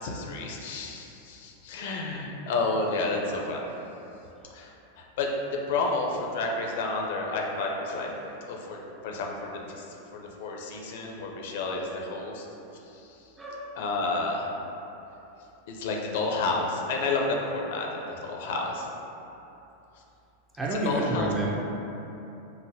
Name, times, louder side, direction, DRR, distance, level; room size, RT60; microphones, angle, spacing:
voice 1, 0.0-3.6 4.5-5.3 5.7-8.1 8.5-9.8 10.1-12.5 12.9-13.2 13.8-14.6 15.7-18.9 20.8-21.3, left 3 dB, 70° left, 0 dB, 0.4 m, -30 dB
voice 2, 13.4-13.7 20.6-21.5, right 1 dB, 10° right, -3 dB, 0.4 m, -29 dB
3.9 x 2.1 x 2.6 m, 2.9 s
supercardioid pair, 140°, 0 cm